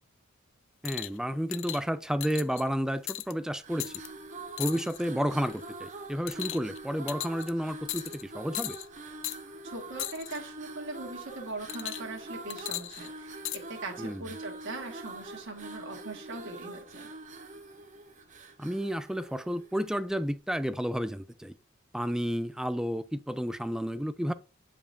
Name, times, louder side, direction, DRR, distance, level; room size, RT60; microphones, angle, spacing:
voice 1, 0.8-3.9 4.6-8.8 14.0-14.2 18.6-21.5 21.9-24.3, equal, 5° right, 0.4 m, -31 dB
sound 1, 0.9-1.2 1.5-1.8 2.2-2.6 3.1-3.3 3.8-4.1 4.6-5.1 5.5-5.7 6.3-6.8 7.1-7.5 7.9-8.2 8.5-8.9 9.2-9.4 10.0-10.4 11.7-12.2 12.5-13.6 14.4-14.5, left 15 dB, 65° left, 0.4 m, -37 dB
sound 2, 3.6-20.0, right 2 dB, 40° right, 0.9 m, -45 dB
voice 2, 9.6-13.4 13.7-17.1, right 2 dB, 65° right, 1.8 m, -40 dB
8.9 x 5.1 x 2.6 m
head